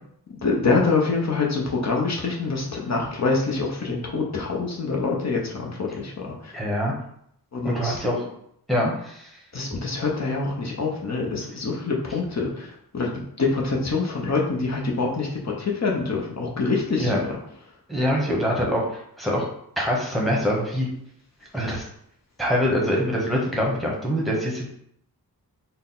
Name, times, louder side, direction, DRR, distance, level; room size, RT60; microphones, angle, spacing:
voice 1, 0.4-6.5 7.5-8.0 9.5-17.4, left 4 dB, 45° left, -1 dB, 0.8 m, -25 dB
voice 2, 6.5-6.9 7.6-8.3 8.7-9.2 17.0-17.2 17.9-18.8 19.2-19.4 19.8-20.9 21.5-21.9 22.4-24.7, equal, ahead, -2 dB, 1.0 m, -24 dB
3.9 x 2.2 x 3.9 m, 0.71 s
wide cardioid pair, 100°, 37 cm